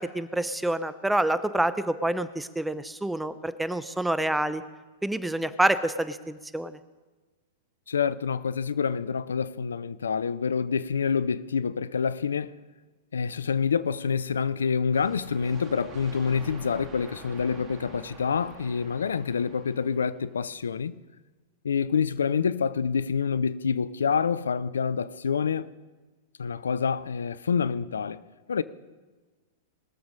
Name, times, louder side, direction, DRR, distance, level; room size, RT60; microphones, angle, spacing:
voice 1, 0.0-4.6 5.0-6.8, right 1 dB, 5° right, 0.7 m, -27 dB
voice 2, 7.9-12.5 13.1-20.9 21.6-25.7 26.4-28.2 28.5-28.6, left 6 dB, 85° left, 0.4 m, -27 dB
sound 1, 14.9-20.6, right 4 dB, 30° right, 2.1 m, -47 dB
21.0 x 7.2 x 5.2 m
hypercardioid pair, 110°, 0 cm